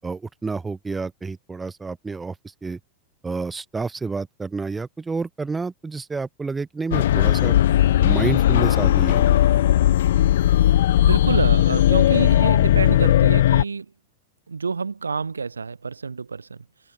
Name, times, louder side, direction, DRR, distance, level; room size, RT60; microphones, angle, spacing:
voice 1, 0.0-2.3 2.6-2.8 3.2-7.5 8.0-9.6, right 4 dB, 10° right, 7.8 m, -29 dB
sound 1, 6.9-13.6, left 12 dB, 60° left, 1.6 m, -17 dB
voice 2, 11.0-13.9 14.5-16.6, right 5 dB, 75° right, 5.8 m, -28 dB
figure-of-eight pair, 90°, 0 cm